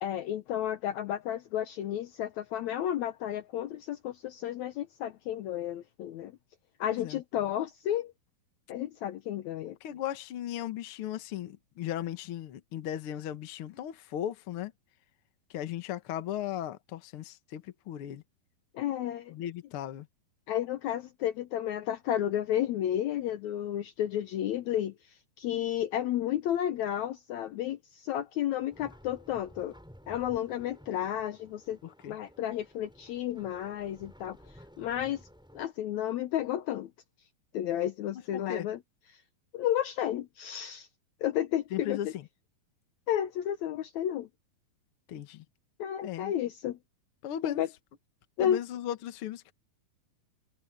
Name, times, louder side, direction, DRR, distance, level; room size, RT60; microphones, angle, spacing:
voice 1, 0.0-6.4 6.8-8.1 8.7-9.8 18.7-19.3 20.5-29.7 30.1-31.8 32.1-34.4 34.8-35.3 35.5-36.9 37.5-38.8 39.1-39.2 39.5-40.9 41.2-42.1 43.1-44.3 45.8-46.8 47.4-47.7 48.4-48.6, left 11 dB, 85° left, 1.6 m, -32 dB
voice 2, 6.9-7.2 9.8-14.7 15.5-18.2 19.3-20.1 31.8-32.1 38.3-38.7 41.7-42.1 45.1-45.4 46.0-46.3 47.2-47.6 48.4-49.5, left 11 dB, 65° left, 1.3 m, -37 dB
sound 1, 28.7-35.7, equal, ahead, 7.1 m, -54 dB
omnidirectional pair, 4.4 m